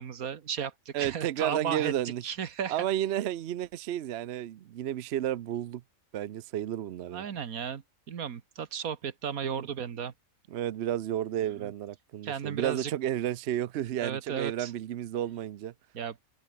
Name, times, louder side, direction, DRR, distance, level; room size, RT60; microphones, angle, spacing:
voice 1, 0.0-1.9 2.2-2.9 7.1-10.1 11.6-11.7 12.2-12.9 14.0-14.7 15.9-16.2, right 8 dB, 80° right, 1.7 m, -34 dB
voice 2, 0.9-2.2 2.7-5.8 6.1-7.2 9.4-9.7 10.5-15.7, right 11 dB, 60° right, 0.8 m, -32 dB
omnidirectional pair, 1.5 m